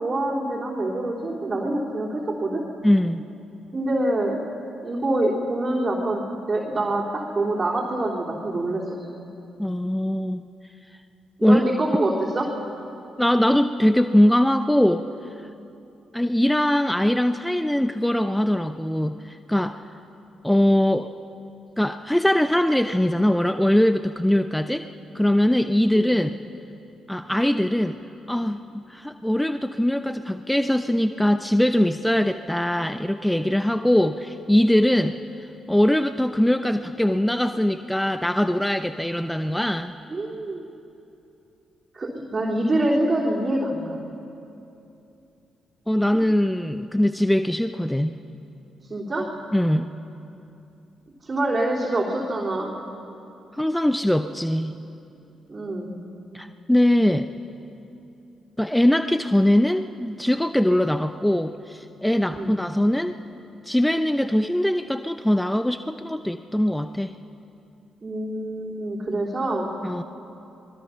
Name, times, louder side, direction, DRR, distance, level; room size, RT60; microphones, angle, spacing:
voice 1, 0.0-2.7 3.7-4.4 4.8-9.0 11.4-12.5 25.9-26.1 40.1-40.7 41.9-44.0 48.9-49.3 51.2-52.7 55.5-56.0 62.3-62.6 68.0-69.8, right 1 dB, 35° right, -6 dB, 3.5 m, -25 dB
voice 2, 2.8-3.3 9.6-10.4 11.4-11.6 13.2-15.0 16.1-19.8 20.4-21.1 21.8-24.8 25.1-26.4 27.1-28.0 28.3-35.2 35.7-39.9 45.9-48.1 49.5-49.9 53.5-54.7 56.3-57.3 58.6-63.1 63.7-67.1 69.8-70.0, left 1 dB, 5° left, 10 dB, 0.7 m, -21 dB
26.0 x 20.5 x 5.7 m, 2.8 s
hypercardioid pair, 45°, 0 cm